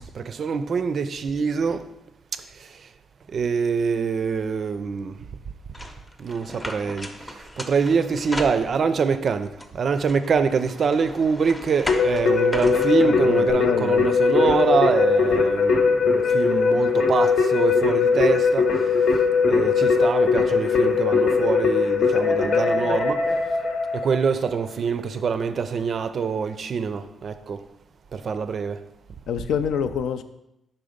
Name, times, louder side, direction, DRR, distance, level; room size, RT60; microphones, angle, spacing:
voice 1, 0.0-1.9 2.3-2.9 3.3-5.2 6.2-18.9 19.5-23.3 23.9-27.6 28.1-28.8, right 5 dB, 50° right, 0.4 m, -25 dB
sound 1, 5.7-9.1 9.6-13.5, left 1 dB, 15° left, 0.6 m, -36 dB
Keyboard (musical), 11.9-24.3, left 5 dB, 60° left, 0.9 m, -20 dB
voice 2, 13.0-14.1 29.3-30.2, left 7 dB, 85° left, 0.4 m, -27 dB
5.8 x 3.9 x 5.0 m
cardioid pair, 125°, 0 cm